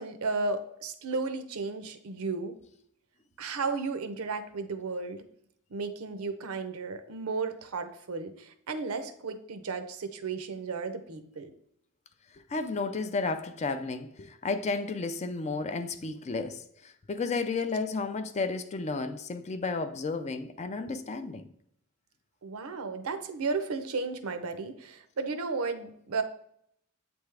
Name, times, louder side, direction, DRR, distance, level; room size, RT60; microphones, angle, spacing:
voice 1, 0.0-2.5 3.4-5.2 5.7-11.5 22.4-26.2, right 4 dB, 70° right, 0.6 m, -34 dB
voice 2, 12.5-21.4, left 3 dB, 30° left, 0.4 m, -32 dB
8.1 x 3.5 x 3.3 m
head